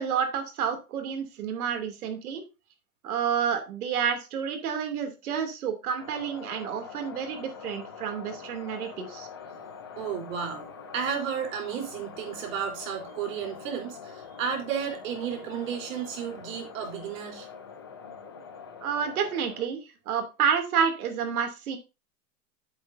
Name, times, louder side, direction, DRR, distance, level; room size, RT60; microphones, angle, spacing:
voice 1, 0.0-2.4 3.0-9.3 18.8-21.8, right 7 dB, 75° right, 5 dB, 2.8 m, -29 dB
sound 1, 6.0-19.7, left 6 dB, 20° left, 0.3 m, -44 dB
voice 2, 10.0-10.7 10.9-17.5, right 7 dB, 60° right, 1 dB, 3.8 m, -33 dB
10.5 x 7.9 x 2.7 m, 0.28 s
supercardioid pair, 175°, 44 cm